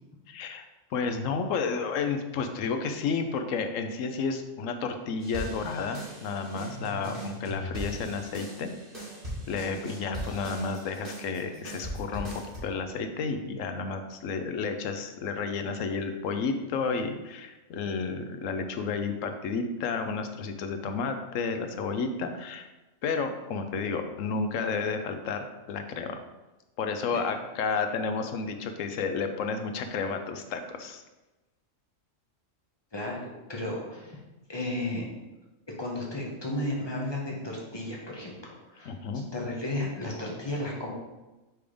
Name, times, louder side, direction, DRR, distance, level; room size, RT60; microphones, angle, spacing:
voice 1, 0.3-0.7 0.9-8.7 9.5-22.7 23.0-26.2 26.8-31.0 38.9-39.2, left 5 dB, 80° left, 7 dB, 1.0 m, -31 dB
sound 1, 5.2-12.6, right 1 dB, 45° right, 2.2 m, -39 dB
voice 2, 32.9-34.2 34.5-35.0 35.8-38.9 39.3-40.9, left 1 dB, 20° left, -3 dB, 1.3 m, -33 dB
6.1 x 3.5 x 5.0 m, 1.1 s
omnidirectional pair, 1.3 m